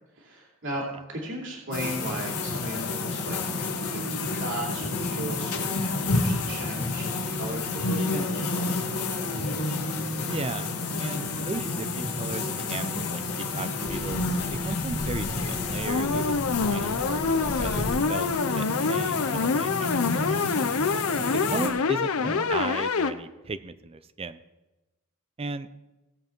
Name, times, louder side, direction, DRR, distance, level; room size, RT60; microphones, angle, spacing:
voice 1, 0.1-3.4 3.8-8.7 22.2-22.4, right 1 dB, 60° right, -2 dB, 2.9 m, -36 dB
sound 1, 1.7-21.7, left 3 dB, 90° left, 1.7 m, -30 dB
voice 2, 10.3-10.7 11.0-14.2 14.6-16.4 16.7-20.5 21.3-24.4 25.4-25.7, right 3 dB, 25° right, 12 dB, 0.4 m, -36 dB
sound 2, 15.9-23.1, left 5 dB, 70° left, 0.6 m, -26 dB
17.5 x 7.4 x 4.5 m, 1.0 s
head